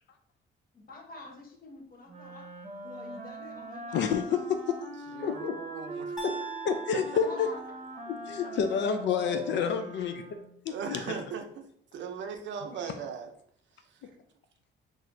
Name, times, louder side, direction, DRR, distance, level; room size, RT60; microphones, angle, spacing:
voice 1, 0.7-4.2 6.9-8.0 8.4-9.1, left 2 dB, 45° left, 1 dB, 0.9 m, -48 dB
Wind instrument woodwind instrument, 2.1-10.6, right 2 dB, 35° right, 0.7 m, -42 dB
voice 2, 3.9-4.9 5.2-5.6 6.2-6.3 6.6-7.5 8.1-10.2 10.7-11.2, left 7 dB, 65° left, 7 dB, 0.4 m, -29 dB
voice 3, 5.1-6.2 6.9-7.0 9.5-9.7 10.7-11.7 11.9-13.3, right 6 dB, 70° right, 5 dB, 0.6 m, -38 dB
sound 1, 6.2-8.3, right 4 dB, 5° right, 0.9 m, -42 dB
4.2 x 2.5 x 2.6 m, 0.65 s
cardioid pair, 90°, 20 cm